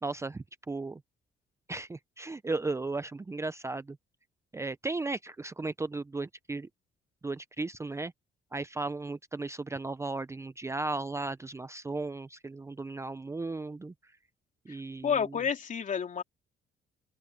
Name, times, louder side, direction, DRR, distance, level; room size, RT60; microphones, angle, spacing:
voice 1, 0.0-1.0 1.7-4.0 4.5-6.7 7.2-8.1 8.5-13.9 14.7-15.2, right 3 dB, 15° right, 0.6 m, -35 dB
voice 2, 15.0-16.2, left 7 dB, 45° left, 3.2 m, -29 dB
open air
cardioid pair, 100°, 18 cm